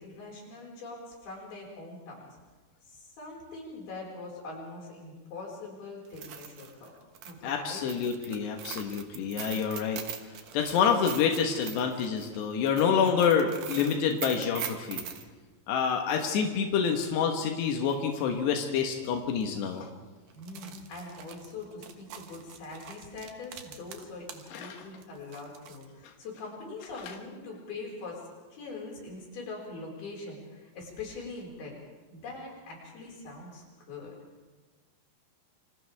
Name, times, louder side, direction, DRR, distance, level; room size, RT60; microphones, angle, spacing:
voice 1, 0.0-2.3 2.9-6.9 7.3-7.8 20.3-28.2 28.5-31.7 32.1-34.1, left 3 dB, 65° left, -2 dB, 7.1 m, -42 dB
sound 1, 6.1-15.2 17.4-17.5 17.9-18.0 18.8-19.0 19.3-19.4 20.3-24.5 24.8-25.9, right 9 dB, 60° right, 2.5 m, -42 dB
voice 2, 7.4-10.0 10.5-15.0 15.7-19.9 24.5-24.8, left 7 dB, 90° left, 3 dB, 3.6 m, -27 dB
28.5 x 26.0 x 3.5 m, 1.3 s
omnidirectional pair, 4.7 m